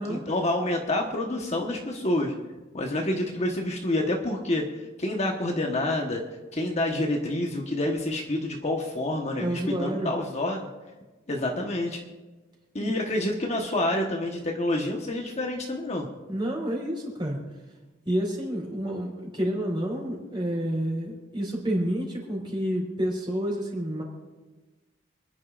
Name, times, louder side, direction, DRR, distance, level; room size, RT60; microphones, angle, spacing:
voice 1, 0.1-2.3 2.7-4.7 5.0-6.2 6.5-10.7 11.3-12.0 12.7-16.1, left 1 dB, 35° left, 1 dB, 1.2 m, -28 dB
voice 2, 9.4-10.1 12.8-13.2 16.3-17.4 18.0-24.0, equal, 25° right, -1 dB, 4.2 m, -29 dB
28.5 x 10.5 x 2.5 m, 1.2 s
head